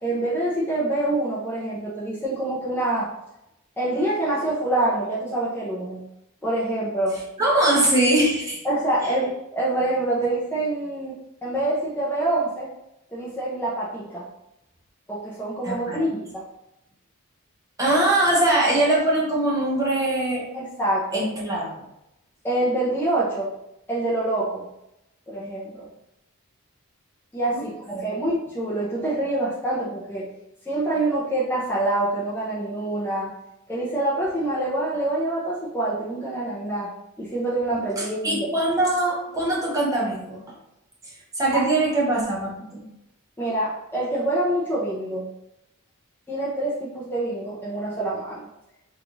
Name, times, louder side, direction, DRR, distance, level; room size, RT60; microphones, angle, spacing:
voice 1, 0.0-3.1 3.8-6.0 6.4-7.2 8.6-12.7 13.1-14.2 15.1-16.4 20.5-21.3 22.4-23.5 23.9-24.6 25.3-25.9 27.3-30.3 30.7-33.3 33.7-36.9 37.2-38.4 41.5-41.6 43.4-45.3 46.3-48.5, right 1 dB, 10° left, -8 dB, 0.6 m, -26 dB
voice 2, 7.4-8.6 9.0-9.1 15.6-16.0 17.8-20.5 21.1-21.7 27.5-28.1 38.0-40.5 41.3-42.8, right 1 dB, 15° right, -5 dB, 0.8 m, -22 dB
3.0 x 2.4 x 3.8 m, 0.87 s
head